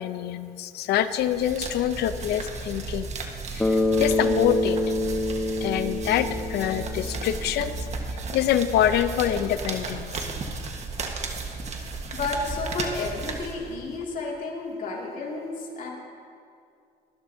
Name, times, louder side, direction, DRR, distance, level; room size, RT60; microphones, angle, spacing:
voice 1, 0.0-3.1 3.5-4.8 5.6-7.7 8.3-10.1, left 10 dB, 75° left, 12 dB, 0.7 m, -25 dB
sound 1, 1.1-14.0, right 3 dB, 40° right, 1.4 m, -34 dB
Bass guitar, 3.6-7.8, left 2 dB, 10° left, 1.0 m, -26 dB
voice 2, 12.1-15.9, left 3 dB, 50° left, -2 dB, 2.4 m, -31 dB
23.5 x 11.5 x 2.8 m, 2.4 s
cardioid pair, 110°, 17 cm